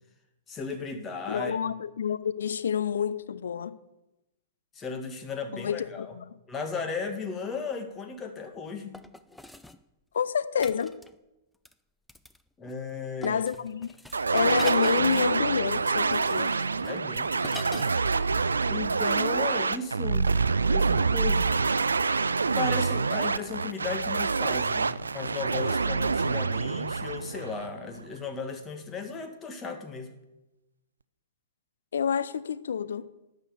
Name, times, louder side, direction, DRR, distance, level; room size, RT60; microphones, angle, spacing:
voice 1, 0.5-1.6 4.8-6.1 6.5-9.0 12.6-13.4 16.8-17.3 18.7-21.5 22.4-30.1, left 4 dB, 20° left, 1.9 m, -35 dB
voice 2, 1.3-3.8 5.5-6.2 10.1-10.9 13.2-13.9 14.3-16.5 31.9-33.1, left 7 dB, 65° left, 0.7 m, -28 dB
sound 1, 7.6-7.7 8.9-9.8 10.6-11.2 11.6-11.7 12.1-12.4 12.7-12.9 13.2-18.1 18.3-18.4, left 1 dB, 5° left, 0.5 m, -44 dB
sound 2, 14.1-28.0, right 4 dB, 75° right, 0.4 m, -26 dB
12.0 x 6.8 x 8.2 m
figure-of-eight pair, 110°, 0 cm